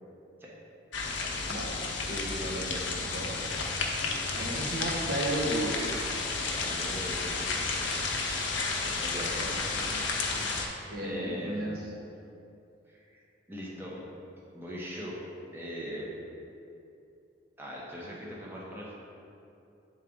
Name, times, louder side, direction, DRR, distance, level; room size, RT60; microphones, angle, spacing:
sound 1, 0.9-10.7, left 3 dB, 70° left, 0.7 m, -32 dB
voice 1, 1.5-1.8 2.1-3.4 4.4-6.0 9.4-9.5 10.9-11.7, right 1 dB, 55° right, -2 dB, 0.8 m, -34 dB
voice 2, 4.3-4.7 6.5-8.5 9.0-11.7 12.9-13.2 13.5-14.0 14.5-15.2 15.5-16.1 17.6-18.9, equal, 10° right, -5 dB, 0.8 m, -41 dB
7.2 x 3.8 x 3.6 m, 2.7 s
head